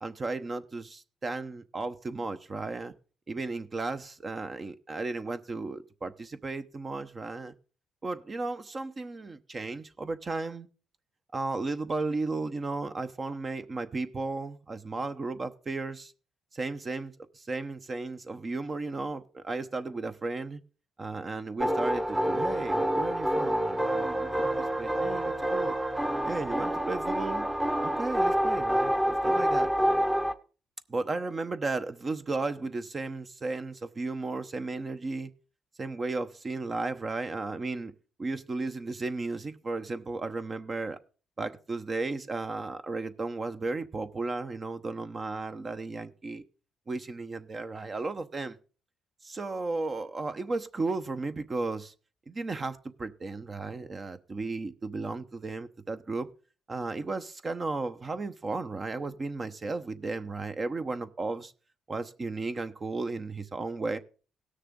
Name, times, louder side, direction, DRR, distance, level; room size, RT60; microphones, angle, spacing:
voice 1, 0.0-2.9 3.3-7.5 8.0-10.7 11.3-16.1 16.5-20.6 21.0-25.8 26.2-27.5 27.8-29.7 30.9-35.3 35.8-37.9 38.2-41.0 41.4-46.4 46.9-48.6 49.2-51.9 52.3-56.3 56.7-61.5 61.9-64.0, right 3 dB, 35° right, 0.9 m, -34 dB
sound 1, 21.6-30.3, equal, 10° right, 1.0 m, -27 dB
18.0 x 6.6 x 3.7 m
cardioid pair, 90°, 0 cm